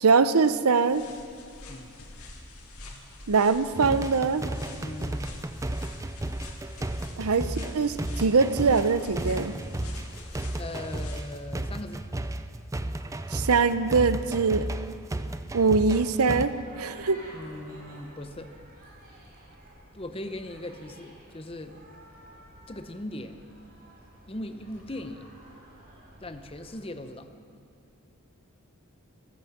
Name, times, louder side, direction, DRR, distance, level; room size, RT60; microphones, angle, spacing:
voice 1, 0.0-1.1 3.3-4.5 7.2-9.6 13.3-14.7 15.5-16.5 16.8-17.2, right 4 dB, 85° right, 13 dB, 0.7 m, -23 dB
sound 1, 0.8-11.4, left 2 dB, 80° left, 2.4 m, -46 dB
sound 2, 3.7-16.5, right 1 dB, 15° right, 0.4 m, -34 dB
voice 2, 4.8-5.3 10.6-12.0 17.3-18.5 19.9-21.8 22.7-23.4 24.3-25.3 26.2-27.3, left 1 dB, 25° left, 8 dB, 0.8 m, -39 dB
sound 3, 16.1-26.7, right 1 dB, 45° right, 4.3 m, -51 dB
14.5 x 13.5 x 7.2 m, 2.4 s
head